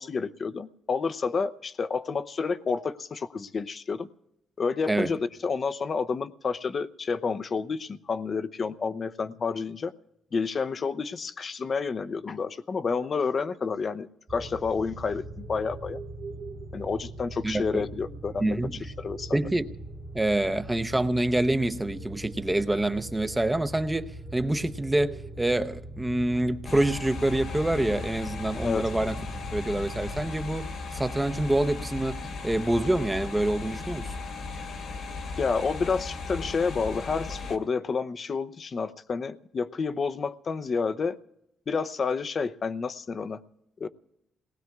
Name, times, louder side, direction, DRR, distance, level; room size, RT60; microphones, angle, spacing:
voice 1, 0.0-4.1 4.6-9.9 10.3-16.0 16.7-19.4 28.6-28.9 35.4-41.2 41.7-43.4 43.8-43.9, left 5 dB, 45° left, 0.7 m, -30 dB
sound 1, 14.3-30.3, right 2 dB, 40° right, 1.6 m, -41 dB
voice 2, 17.4-17.8 18.4-18.8 19.3-19.7 20.1-29.2 29.5-34.1, right 1 dB, 10° right, 0.8 m, -26 dB
sound 2, 26.6-37.6, left 4 dB, 70° left, 2.1 m, -36 dB
29.5 x 19.5 x 2.4 m
cardioid pair, 90°, 0 cm